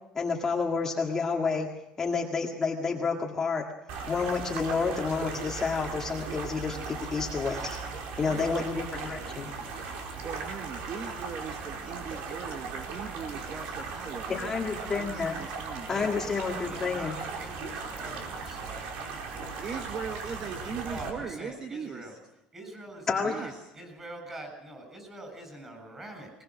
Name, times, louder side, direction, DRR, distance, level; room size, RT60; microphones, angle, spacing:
voice 1, 0.1-1.7 2.0-3.6 4.1-7.6 8.2-9.5 14.3-15.3 15.9-17.1 23.1-23.3, left 5 dB, 20° left, 0 dB, 1.9 m, -29 dB
sound 1, 3.9-21.1, right 5 dB, 70° right, 4.6 m, -38 dB
voice 2, 8.2-8.7 9.5-15.9 19.6-22.2 23.2-23.5, right 5 dB, 30° right, 5 dB, 1.5 m, -40 dB
voice 3, 15.9-19.6 20.8-22.2 22.5-26.3, right 1 dB, 15° right, 5 dB, 7.3 m, -44 dB
22.0 x 20.5 x 6.3 m, 0.91 s
cardioid pair, 165°, 2 cm